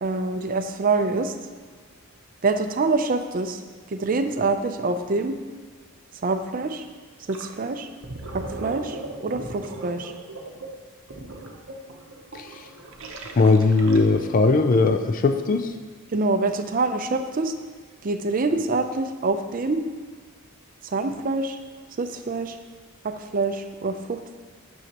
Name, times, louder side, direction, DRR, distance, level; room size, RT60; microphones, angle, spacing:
voice 1, 0.0-1.3 2.4-3.6 3.9-5.3 6.2-6.8 7.3-7.9 8.3-9.0 9.2-10.1 16.1-17.5 18.0-19.8 20.9-21.6 22.0-22.6 23.0-24.4, right 3 dB, 40° right, 7 dB, 0.5 m, -25 dB
Gurgling, 7.3-7.5 7.9-14.4, right 2 dB, 60° right, 0.8 m, -38 dB
voice 2, 13.4-15.7, left 3 dB, 40° left, 7 dB, 0.3 m, -19 dB
9.4 x 6.4 x 2.9 m, 1.5 s
head